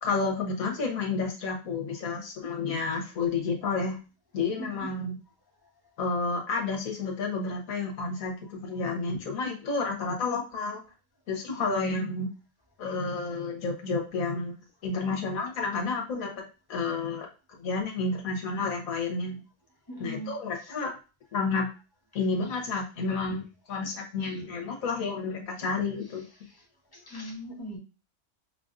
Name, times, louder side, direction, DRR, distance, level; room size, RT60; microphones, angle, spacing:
voice 1, 0.0-4.0 4.3-5.1 6.0-10.8 11.3-12.3 12.8-14.6 14.8-16.4 16.7-17.3 17.6-19.4 20.0-20.9 21.3-21.7 22.1-26.2, left 4 dB, 80° left, 1 dB, 1.5 m, -30 dB
voice 2, 19.9-20.3 26.5-26.6 26.9-27.8, equal, 20° left, -2 dB, 1.0 m, -39 dB
5.5 x 2.5 x 2.5 m, 0.32 s
omnidirectional pair, 1.4 m